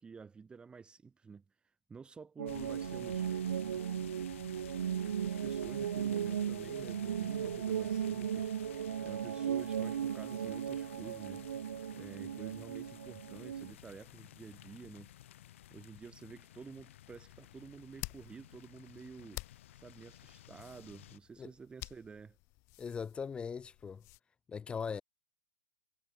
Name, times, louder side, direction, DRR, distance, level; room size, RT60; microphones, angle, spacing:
voice 1, 0.0-1.4 1.9-3.3 5.0-8.5 9.0-11.5 12.0-15.1 15.7-19.4 19.7-22.4, right 5 dB, 10° right, 1.1 m, -51 dB
sound 1, 2.4-13.7, right 9 dB, 75° right, 0.6 m, -36 dB
sound 2, 2.5-21.2, left 13 dB, 60° left, 4.5 m, -54 dB
sound 3, 17.0-24.2, left 25 dB, 40° left, 1.8 m, -51 dB
voice 2, 22.8-24.0 24.5-25.0, left 6 dB, 15° left, 0.4 m, -40 dB
hypercardioid pair, 115°, 8 cm